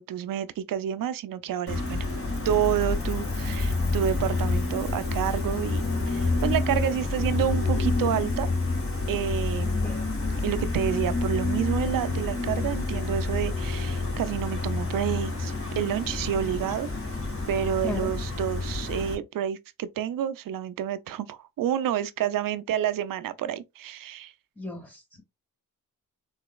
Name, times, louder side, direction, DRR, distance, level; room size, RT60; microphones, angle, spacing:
voice 1, 0.0-2.0 2.4-8.5 9.1-9.8 10.4-17.2 17.5-24.3, right 10 dB, 80° right, 0.5 m, -29 dB
Gull seagull, 1.7-19.1, left 3 dB, 40° left, 2.0 m, -28 dB
voice 2, 9.8-10.3 17.8-18.1 24.6-25.2, left 2 dB, 10° left, 2.0 m, -35 dB
3.9 x 3.0 x 2.3 m
cardioid pair, 75°, 33 cm